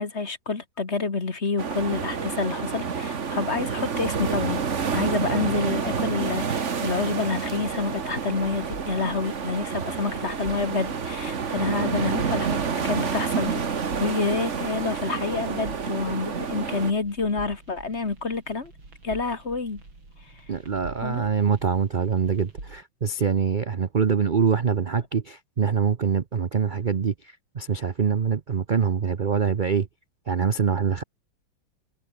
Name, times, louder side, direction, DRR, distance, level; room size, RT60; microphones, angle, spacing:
voice 1, 0.0-4.6 4.9-13.6 14.0-18.7 19.0-19.8 21.0-21.3, left 4 dB, 35° left, 2.2 m, -28 dB
sound 1, 1.6-16.9, right 6 dB, 40° right, 1.7 m, -29 dB
sound 2, 7.6-22.8, right 2 dB, 85° right, 7.6 m, -46 dB
voice 2, 20.5-29.9 30.3-31.0, right 6 dB, 55° right, 0.5 m, -24 dB
omnidirectional pair, 2.1 m